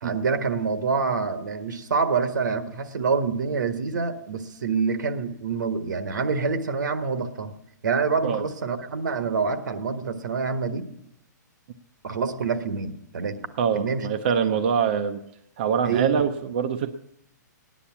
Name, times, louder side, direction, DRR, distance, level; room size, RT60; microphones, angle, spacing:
voice 1, 0.0-7.5 7.8-10.9 12.0-13.4 13.7-14.1 15.8-16.3, right 5 dB, 75° right, 10 dB, 1.5 m, -26 dB
voice 2, 13.6-15.2 15.6-16.9, right 7 dB, 35° right, 8 dB, 0.6 m, -24 dB
16.0 x 10.0 x 7.2 m, 0.77 s
hypercardioid pair, 175°, 10 cm